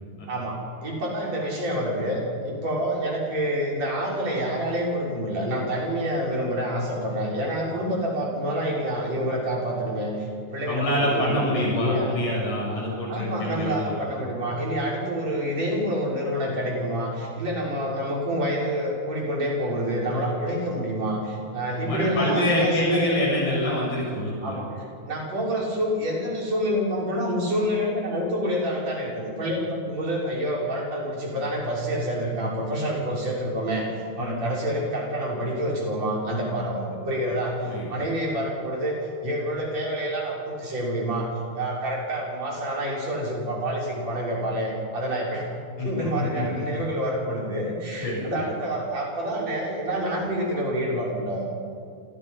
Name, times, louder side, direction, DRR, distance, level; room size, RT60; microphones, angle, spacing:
voice 1, 0.3-12.2 13.1-23.2 24.4-41.3 41.5-45.4 45.8-51.5, equal, 50° right, -3 dB, 6.8 m, -27 dB
voice 2, 10.7-13.9 21.8-24.6 34.2-34.4 37.6-37.9 45.8-46.5 48.0-48.3, left 1 dB, 90° left, -5 dB, 9.4 m, -26 dB
29.5 x 26.0 x 5.6 m, 2.3 s
omnidirectional pair, 3.8 m